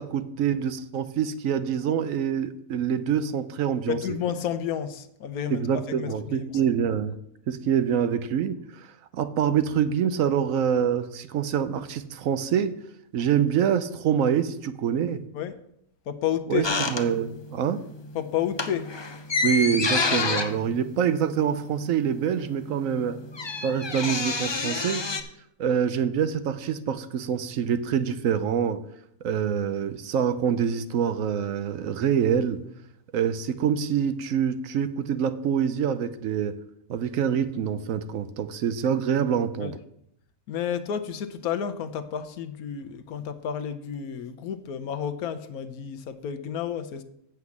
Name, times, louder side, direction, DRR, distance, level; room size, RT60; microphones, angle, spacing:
voice 1, 0.0-4.0 5.5-7.2 7.5-8.9 9.1-12.8 13.1-15.2 16.5-17.8 19.4-23.2 23.6-25.0 25.6-28.8 29.2-32.6 33.1-36.6 36.9-39.7, right 8 dB, 70° right, 1.0 m, -25 dB
voice 2, 3.9-6.5 15.3-15.6 16.1-16.7 18.1-18.9 39.6-39.8 40.5-47.0, left 9 dB, 85° left, 1.3 m, -31 dB
sound 1, 16.6-17.6 17.9-18.1 18.4-21.9 22.2-22.3 22.5-25.2, left 3 dB, 35° left, 0.4 m, -28 dB
7.9 x 6.0 x 7.1 m
omnidirectional pair, 1.5 m